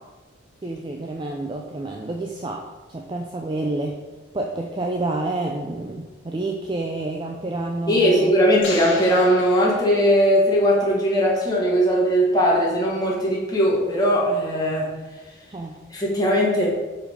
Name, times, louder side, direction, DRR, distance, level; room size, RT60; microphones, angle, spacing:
voice 1, 0.6-4.0 4.3-8.3 15.5-15.8, right 2 dB, 25° right, 1 dB, 0.4 m, -29 dB
voice 2, 7.9-14.9 15.9-16.7, equal, 20° left, -5 dB, 1.6 m, -19 dB
sound 1, 8.6-10.5, left 3 dB, 70° left, 1.6 m, -35 dB
5.2 x 4.7 x 5.5 m, 1.2 s
head